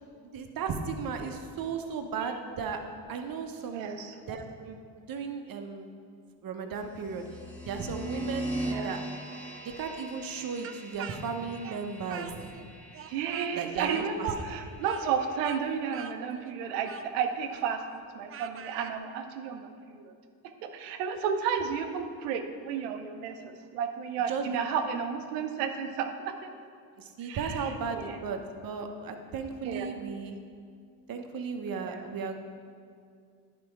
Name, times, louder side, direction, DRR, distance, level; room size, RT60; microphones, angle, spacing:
voice 1, 0.3-2.8 3.1-3.8 4.3-4.8 5.1-5.9 6.4-7.3 7.7-8.5 8.8-9.0 9.6-12.5 13.5-14.3 24.3-24.6 27.0-30.4 31.1-32.4, right 5 dB, 50° right, 5 dB, 1.0 m, -35 dB
voice 2, 3.7-4.4 8.6-8.9 13.1-20.1 20.6-26.5 27.2-28.2 29.6-30.0 31.7-32.0, right 7 dB, 85° right, 6 dB, 0.8 m, -33 dB
sound 1, 6.9-15.7, right 1 dB, 5° left, 1.3 m, -41 dB
Speech, 10.6-12.7 12.9-19.0, right 8 dB, 30° right, 0.4 m, -45 dB
10.5 x 4.2 x 4.6 m, 2.3 s
hypercardioid pair, 60°, 45 cm